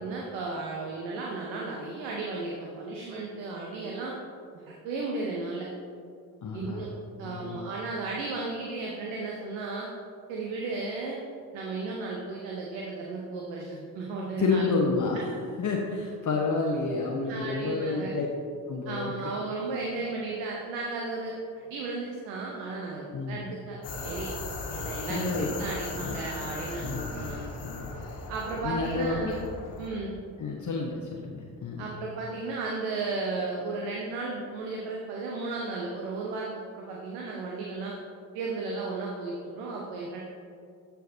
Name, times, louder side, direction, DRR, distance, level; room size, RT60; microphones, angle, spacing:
voice 1, 0.0-4.2 4.5-5.7 6.5-6.9 7.2-9.9 10.3-11.2 11.5-14.6 17.3-18.1 18.9-21.3 21.7-24.3 24.7-27.4 28.3-29.4 29.8-30.2 31.8-37.9 38.3-40.2, right 3 dB, 80° right, -2 dB, 0.8 m, -34 dB
voice 2, 6.4-6.8 7.2-7.6 14.4-15.3 15.6-18.3 18.7-19.1 23.1-23.4 25.1-25.5 26.0-26.2 26.8-27.3 27.6-27.9 28.6-29.4 30.4-31.9, left 4 dB, 40° left, -1 dB, 0.9 m, -30 dB
sound 1, 23.8-29.9, left 3 dB, 70° left, 1.6 m, -38 dB
12.5 x 4.5 x 2.7 m, 2.3 s
hypercardioid pair, 45°, 45 cm